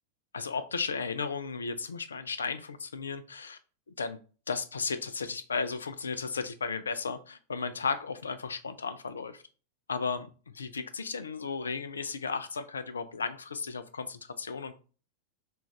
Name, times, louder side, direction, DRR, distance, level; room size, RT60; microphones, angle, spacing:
voice 1, 0.3-3.6 4.0-4.2 4.5-9.4 9.9-14.7, left 5 dB, 70° left, 10 dB, 0.3 m, -34 dB
2.5 x 2.3 x 3.6 m, 0.38 s
figure-of-eight pair, 90°, 0 cm